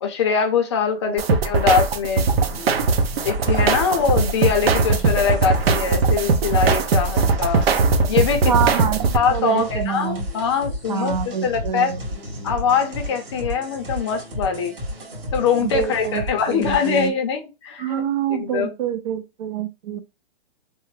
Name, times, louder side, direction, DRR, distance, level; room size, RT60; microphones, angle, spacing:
voice 1, 0.0-2.3 3.2-7.6 8.1-8.5 9.1-11.1 11.4-11.9 12.4-14.8 15.3-18.0 18.3-18.7, left 6 dB, 30° left, 0.5 m, -22 dB
sound 1, 1.2-9.2, right 4 dB, 90° right, 0.6 m, -20 dB
sound 2, 2.3-17.1, left 1 dB, 65° right, 2.0 m, -32 dB
voice 2, 8.5-10.2 10.9-12.0 15.6-17.1 17.8-20.0, right 8 dB, 45° right, 0.4 m, -26 dB
3.3 x 2.1 x 3.1 m
hypercardioid pair, 165°, 29 cm